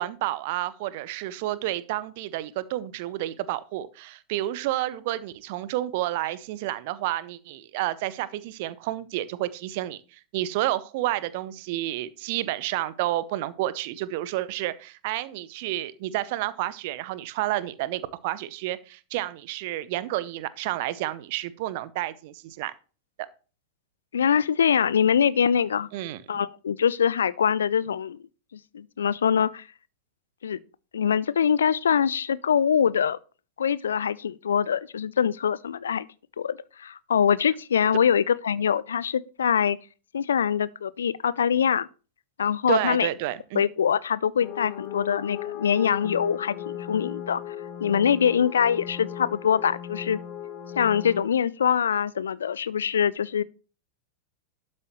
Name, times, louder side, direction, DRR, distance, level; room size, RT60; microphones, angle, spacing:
voice 1, 0.0-22.7 25.9-26.2 42.7-43.6, right 15 dB, 50° right, 0.7 m, -30 dB
voice 2, 24.1-25.9 26.3-28.2 28.5-29.6 30.4-30.6 30.9-33.2 33.6-36.1 36.4-39.8 40.1-41.9 42.4-43.1 43.5-47.6 47.8-50.2 50.8-53.4, left 8 dB, 65° left, 0.4 m, -24 dB
sound 1, 44.4-51.2, left 10 dB, 35° left, 1.3 m, -36 dB
12.0 x 7.5 x 3.0 m
figure-of-eight pair, 90°, 0 cm